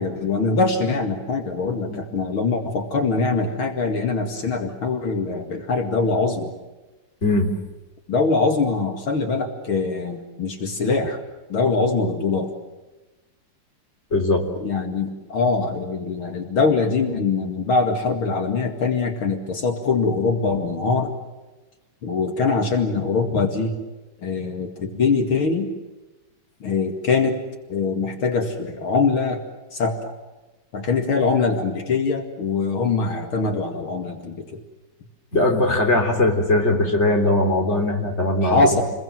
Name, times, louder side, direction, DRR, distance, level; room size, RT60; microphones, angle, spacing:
voice 1, 0.0-6.5 8.1-11.2 11.5-12.6 14.6-21.1 22.0-23.7 24.2-25.7 26.6-27.4 27.7-29.4 29.7-30.1 30.7-34.6 38.4-38.8, left 4 dB, 70° left, 4 dB, 3.0 m, -23 dB
voice 2, 7.2-7.6 14.1-14.5 35.3-38.8, left 2 dB, 30° left, 3 dB, 3.9 m, -20 dB
29.5 x 22.0 x 7.7 m, 1.1 s
omnidirectional pair, 2.4 m